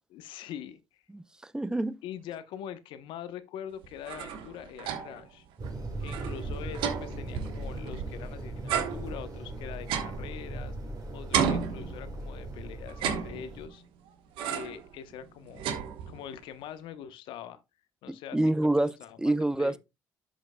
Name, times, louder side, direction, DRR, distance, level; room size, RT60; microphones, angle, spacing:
voice 1, 0.1-1.0 2.0-5.5 6.0-10.8 11.1-13.8 14.5-15.7 16.1-17.6 18.0-19.8, left 9 dB, 70° left, 0.9 m, -43 dB
voice 2, 1.5-2.0 18.1-18.9 19.2-19.8, right 1 dB, 10° right, 0.6 m, -26 dB
sound 1, 3.8-5.3 5.6-5.7 6.0-8.2 8.7-10.9 11.3-12.4 12.9-13.8 14.4-14.9 15.2-16.4, right 7 dB, 75° right, 1.1 m, -33 dB
sound 2, 5.6-13.7, right 2 dB, 45° right, 2.8 m, -39 dB
11.0 x 6.2 x 2.2 m
hypercardioid pair, 55°, 9 cm